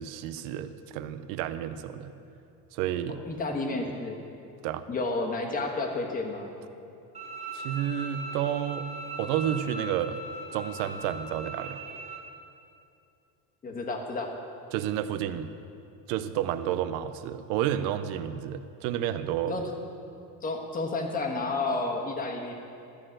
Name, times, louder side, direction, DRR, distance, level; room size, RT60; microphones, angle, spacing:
voice 1, 0.0-2.1 2.7-3.2 4.6-4.8 7.5-8.9 9.2-10.2 10.5-11.8 14.7-15.5 16.1-19.5, right 11 dB, 85° right, 12 dB, 0.8 m, -30 dB
voice 2, 3.1-4.2 4.9-6.5 13.6-14.3 19.4-19.7 20.4-22.5, left 3 dB, 20° left, 2 dB, 1.3 m, -31 dB
Bowed string instrument, 7.1-12.2, right 2 dB, 15° right, 1.4 m, -39 dB
13.5 x 6.7 x 7.6 m, 2.6 s
cardioid pair, 160°, 39 cm